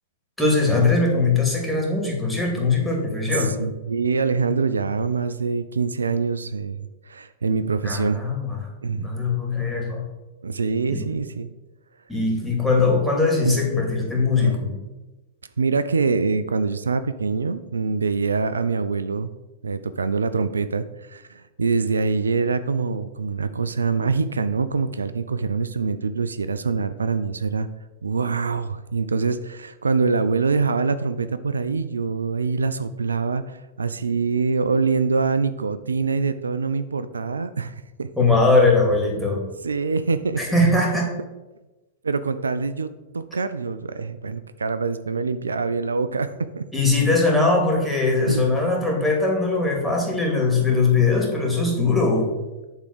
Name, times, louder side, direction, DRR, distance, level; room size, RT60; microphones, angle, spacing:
voice 1, 0.4-3.6 7.8-8.6 8.9-10.1 10.9-11.1 12.1-14.7 38.2-39.5 40.4-41.1 46.7-52.3, left 3 dB, 5° left, -2 dB, 2.6 m, -21 dB
voice 2, 3.3-8.2 8.8-9.1 10.4-11.5 13.4-13.6 14.4-14.5 15.6-19.3 19.6-27.7 28.0-38.1 39.6-40.4 42.0-42.9 43.1-46.6 48.3-48.4, right 4 dB, 85° right, 12 dB, 0.4 m, -24 dB
8.2 x 3.6 x 6.7 m, 1.1 s
hypercardioid pair, 105°, 0 cm